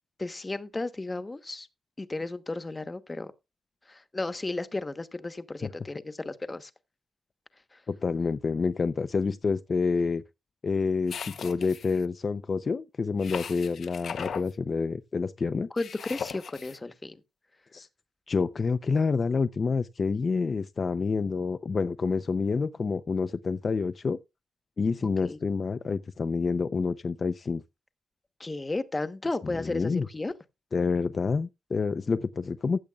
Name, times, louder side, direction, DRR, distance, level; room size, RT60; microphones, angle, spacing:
voice 1, 0.2-1.7 2.0-3.3 3.9-6.7 7.7-7.8 15.7-17.2 25.2-25.4 28.4-30.3, left 2 dB, 25° left, 1.1 m, -34 dB
voice 2, 7.9-10.2 10.6-15.7 17.7-17.9 18.3-24.2 24.8-27.6 29.4-30.0 30.7-32.8, left 4 dB, 45° left, 0.6 m, -28 dB
sound 1, 11.1-12.0 13.2-14.5 15.8-16.8, left 7 dB, 70° left, 0.9 m, -38 dB
15.5 x 10.5 x 2.4 m
cardioid pair, 100°, 0 cm